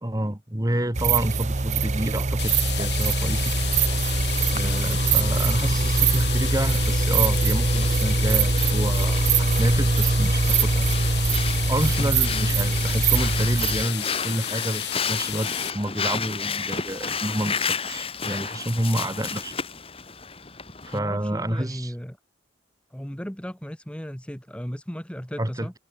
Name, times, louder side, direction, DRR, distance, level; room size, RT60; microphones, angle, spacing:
voice 1, 0.0-3.5 4.5-10.9 11.7-19.5 20.8-21.9 25.4-25.7, right 1 dB, 20° right, 1.6 m, -29 dB
sound 1, 0.9-13.8, right 3 dB, 40° right, 0.8 m, -22 dB
sound 2, 2.4-15.7, left 13 dB, 65° left, 5.2 m, -32 dB
Breathing, 5.9-21.0, left 6 dB, 30° left, 4.2 m, -33 dB
voice 2, 12.0-12.3 20.9-22.2 22.9-25.7, equal, 5° left, 1.4 m, -35 dB
head